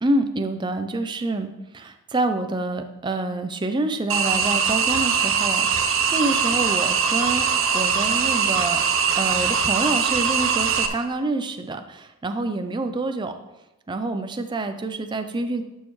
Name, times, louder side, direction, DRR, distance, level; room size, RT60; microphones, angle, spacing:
voice 1, 0.0-1.5 1.7-7.5 7.7-8.8 9.2-13.3 13.9-15.6, right 2 dB, 20° right, 7 dB, 0.4 m, -27 dB
sound 1, 4.1-10.9, right 6 dB, 70° right, 0.7 m, -22 dB
11.5 x 6.4 x 3.2 m, 0.97 s
head